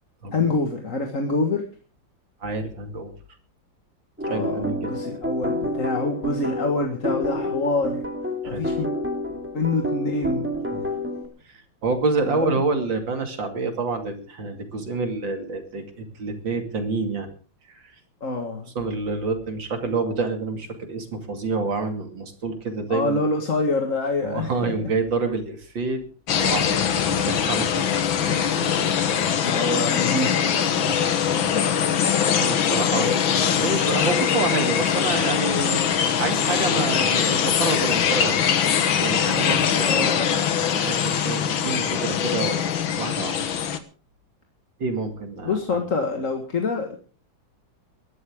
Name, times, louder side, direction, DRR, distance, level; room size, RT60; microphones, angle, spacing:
voice 1, 0.3-1.7 4.3-8.0 8.5-8.9 9.5-10.5 12.3-12.6 18.2-18.7 22.9-24.9 29.2-30.3 32.9-33.2 39.8-40.4 45.4-47.0, left 3 dB, 40° left, 3 dB, 1.9 m, -26 dB
voice 2, 2.4-3.1 4.2-4.9 8.4-8.6 10.7-10.8 11.4-17.3 17.7-17.9 18.6-23.2 24.2-26.0 26.4-27.9 28.3-28.8 30.9-31.1 32.2-38.4 39.0-40.2 40.8-42.6 43.0-43.4 44.8-45.8, right 3 dB, 70° right, 5 dB, 3.2 m, -28 dB
sound 1, 4.2-11.3, left 1 dB, 5° right, 2.1 m, -29 dB
sound 2, 26.3-43.8, left 8 dB, 80° left, 2.0 m, -22 dB
22.0 x 12.0 x 3.7 m, 0.37 s
omnidirectional pair, 2.2 m